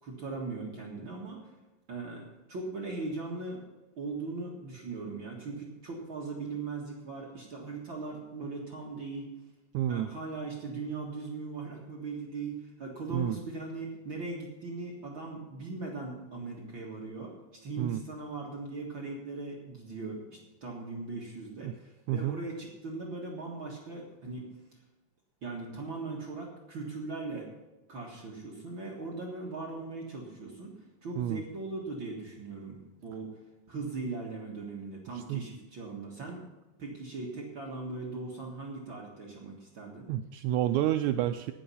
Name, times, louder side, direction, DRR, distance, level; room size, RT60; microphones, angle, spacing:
voice 1, 0.0-1.5 1.9-3.7 4.0-9.3 9.9-17.3 17.6-24.5 25.4-27.5 27.9-30.7 31.0-33.3 33.7-36.4 36.8-40.1, right 3 dB, 45° right, -2 dB, 2.0 m, -39 dB
voice 2, 9.7-10.1 13.1-13.4 17.8-18.0 21.6-21.7 22.1-22.4 31.2-31.4 35.3-35.4 40.1-41.5, right 12 dB, 90° right, 9 dB, 1.6 m, -29 dB
18.0 x 7.1 x 5.6 m, 1.1 s
omnidirectional pair, 3.9 m